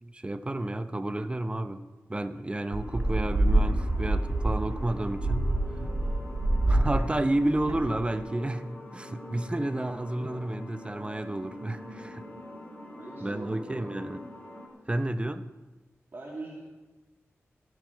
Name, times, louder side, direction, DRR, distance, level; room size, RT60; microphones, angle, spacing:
voice 1, 0.0-5.5 6.7-12.3 13.2-14.2 14.9-15.5, right 1 dB, 20° right, 0.8 m, -31 dB
sound 1, 2.7-8.2, right 1 dB, 65° right, 4.2 m, -27 dB
sound 2, 2.8-14.7, left 1 dB, 25° left, 3.6 m, -45 dB
voice 2, 13.0-13.9 16.1-16.6, right 2 dB, 45° right, 2.6 m, -42 dB
14.5 x 11.0 x 4.7 m
wide cardioid pair, 80°, 5 cm